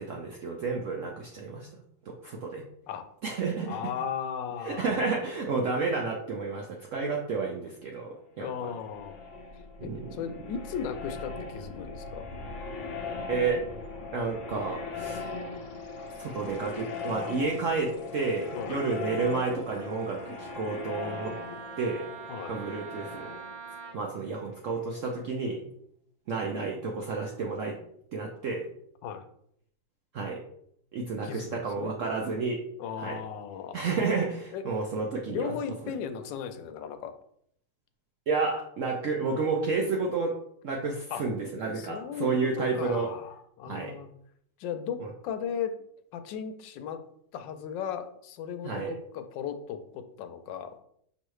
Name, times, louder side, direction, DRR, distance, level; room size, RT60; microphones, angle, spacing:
voice 1, 0.0-1.7 2.1-2.6 3.2-3.8 4.6-8.7 9.8-10.1 13.3-13.6 14.1-15.4 16.2-21.3 21.8-22.1 22.5-23.3 23.9-25.6 26.3-27.8 28.1-28.6 30.1-30.4 30.9-32.6 33.0-33.2 33.7-35.5 35.9-36.0 38.3-40.3 40.6-43.1 43.7-44.0 45.0-45.1 48.6-48.9, right 4 dB, 75° right, 0 dB, 0.7 m, -31 dB
voice 2, 3.7-4.9 8.4-9.1 9.8-12.3 18.5-18.8 22.3-22.6 29.0-29.3 31.2-31.9 32.8-34.6 35.3-37.1 41.1-41.2 41.8-44.1 44.6-45.8 46.1-47.0 47.3-50.8, left 8 dB, 85° left, 9 dB, 1.3 m, -36 dB
sound 1, 8.5-25.1, left 4 dB, 55° left, 1.0 m, -40 dB
Wind instrument woodwind instrument, 19.7-24.0, right 7 dB, 90° right, 1.3 m, -45 dB
5.5 x 3.1 x 3.1 m, 0.70 s
omnidirectional pair, 1.9 m